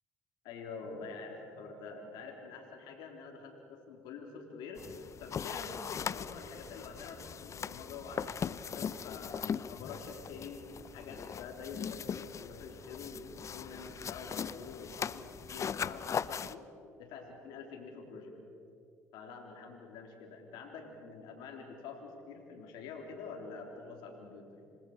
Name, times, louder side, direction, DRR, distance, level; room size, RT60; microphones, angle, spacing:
voice 1, 0.4-10.7 10.9-16.6 17.0-18.3 19.1-24.6, left 4 dB, 70° left, 1 dB, 3.8 m, -46 dB
sound 1, 4.8-16.5, left 7 dB, 40° left, 0.7 m, -40 dB
27.5 x 19.5 x 6.8 m, 2.5 s
hypercardioid pair, 60°, 8 cm